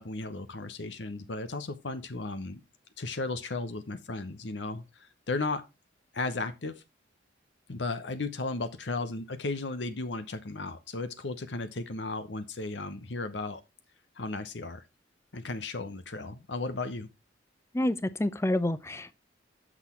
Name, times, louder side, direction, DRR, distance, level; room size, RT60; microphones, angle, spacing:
voice 1, 0.0-2.6 3.0-5.6 6.1-6.8 7.7-13.6 14.2-14.8 15.3-17.1, left 3 dB, 70° left, 0.9 m, -35 dB
voice 2, 17.7-19.1, left 1 dB, 15° left, 0.5 m, -28 dB
8.0 x 6.1 x 4.4 m
head